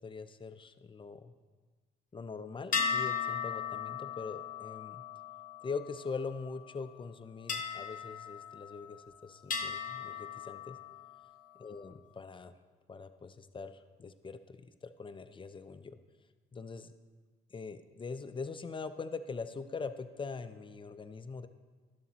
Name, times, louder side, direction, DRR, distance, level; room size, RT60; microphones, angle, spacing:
voice 1, 0.0-1.3 2.1-5.0 5.6-10.8 11.6-12.5 12.9-16.0 16.5-16.9 17.5-21.5, left 4 dB, 25° left, 11 dB, 0.4 m, -42 dB
sound 1, 2.7-6.4 7.5-9.0 9.5-11.2, left 6 dB, 40° left, 0.9 m, -37 dB
12.0 x 7.0 x 2.8 m, 1.4 s
cardioid pair, 90°, 20 cm